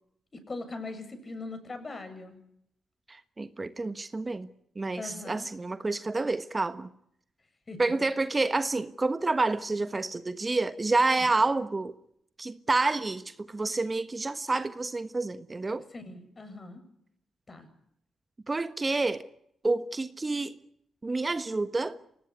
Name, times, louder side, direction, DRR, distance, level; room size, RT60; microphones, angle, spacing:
voice 1, 0.3-2.4 5.0-5.5 7.7-8.1 11.2-11.3 15.9-16.8 17.5-17.7, left 3 dB, 35° left, 7.7 m, -41 dB
voice 2, 3.1-4.5 4.8-6.9 7.8-11.9 12.4-15.8 18.5-19.3 19.6-20.5 21.0-22.0, right 3 dB, 30° right, 1.3 m, -28 dB
26.0 x 18.5 x 9.8 m
hypercardioid pair, 45°, 0 cm